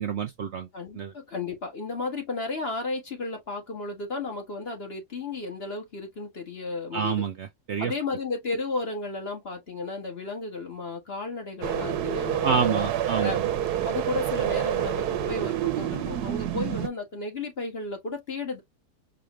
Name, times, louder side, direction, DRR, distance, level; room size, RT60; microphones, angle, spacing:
voice 1, 0.0-0.7 0.9-1.1 6.9-7.9 12.4-13.5, right 7 dB, 60° right, 0.7 m, -28 dB
voice 2, 0.7-7.2 7.8-13.4 13.8-18.6, left 3 dB, 40° left, 1.6 m, -33 dB
sound 1, 11.6-16.9, right 11 dB, 90° right, 1.3 m, -28 dB
4.9 x 2.4 x 3.1 m
omnidirectional pair, 1.6 m